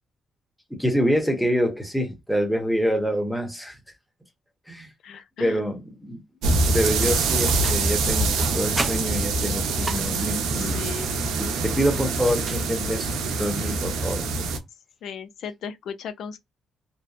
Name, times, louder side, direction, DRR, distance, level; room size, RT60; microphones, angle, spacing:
voice 1, 0.7-3.8 4.7-4.9 5.4-6.2 6.7-10.9 11.4-13.1 13.4-14.2, equal, ahead, 0.9 m, -26 dB
voice 2, 5.0-5.6 10.5-11.1 15.0-16.4, left 7 dB, 70° left, 0.4 m, -36 dB
sound 1, 6.4-14.6, right 3 dB, 85° right, 0.6 m, -25 dB
sound 2, 7.5-8.0 8.4-10.5 12.2-13.1, right 2 dB, 25° right, 0.4 m, -35 dB
2.7 x 2.1 x 2.4 m
cardioid pair, 90°, 0 cm